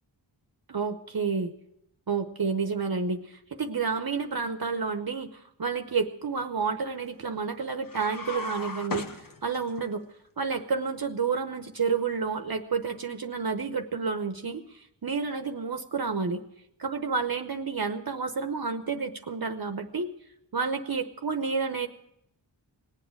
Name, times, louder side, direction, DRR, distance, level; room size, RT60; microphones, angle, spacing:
voice 1, 0.7-1.5 2.1-10.0 10.4-16.4 16.8-20.1 20.5-21.9, right 5 dB, 50° right, 7 dB, 0.9 m, -30 dB
sound 1, 7.8-9.9, left 2 dB, 45° left, 1.1 m, -36 dB
19.0 x 8.1 x 8.9 m, 0.80 s
wide cardioid pair, 85°, 45 cm